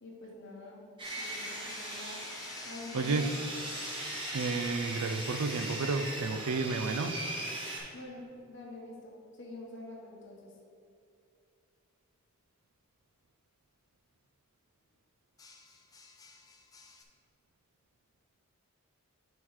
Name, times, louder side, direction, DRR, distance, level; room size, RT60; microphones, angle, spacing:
voice 1, 0.0-0.8 1.1-2.2 2.6-3.4 7.9-10.5, left 2 dB, 55° left, -2 dB, 1.0 m, -46 dB
sound 1, 1.0-6.4 9.9-10.2 15.4-17.0, left 3 dB, 15° left, 0.4 m, -49 dB
Sawing, 1.0-7.8, right 1 dB, 20° right, 1.0 m, -39 dB
voice 2, 2.9-3.3 4.3-7.2, right 4 dB, 80° right, 8 dB, 0.4 m, -31 dB
10.5 x 3.8 x 3.1 m, 2.5 s
head